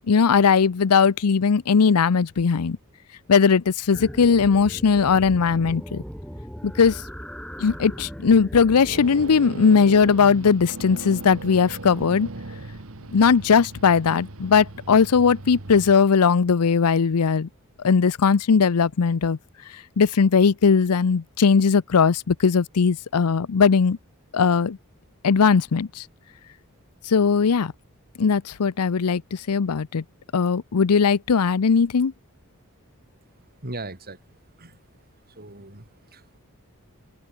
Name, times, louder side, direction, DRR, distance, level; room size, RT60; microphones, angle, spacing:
voice 1, 0.1-2.8 3.3-6.0 6.6-7.0 7.6-12.3 13.1-17.5 17.8-19.4 19.7-24.0 24.3-24.8 25.2-26.0 27.1-27.7 28.2-30.0 30.3-32.1, left 5 dB, 85° left, 0.6 m, -19 dB
sound 1, 3.9-9.1, equal, 5° left, 6.8 m, -38 dB
sound 2, 8.9-16.0, right 2 dB, 65° right, 1.6 m, -37 dB
voice 2, 33.3-34.8 35.2-36.4, right 2 dB, 45° right, 6.1 m, -40 dB
open air
head